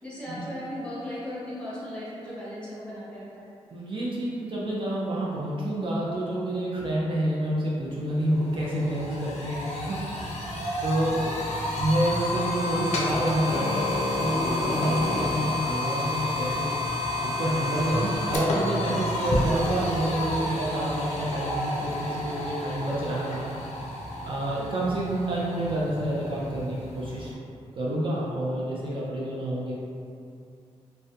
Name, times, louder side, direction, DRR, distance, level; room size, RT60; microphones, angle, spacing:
voice 1, 0.0-3.5 11.0-11.4 15.2-15.6 24.5-25.0, left 1 dB, 10° left, -9 dB, 0.7 m, -38 dB
voice 2, 3.7-11.2 11.5-16.7 17.4-23.9 24.2-27.3 27.8-29.7, right 1 dB, 45° right, -6 dB, 0.4 m, -28 dB
sound 1, 7.9-8.0 8.3-27.3, left 1 dB, 75° left, 0.4 m, -30 dB
sound 2, 17.4-23.3, right 2 dB, 80° right, 0.7 m, -43 dB
2.3 x 2.1 x 2.7 m, 2.5 s
wide cardioid pair, 120°, 12 cm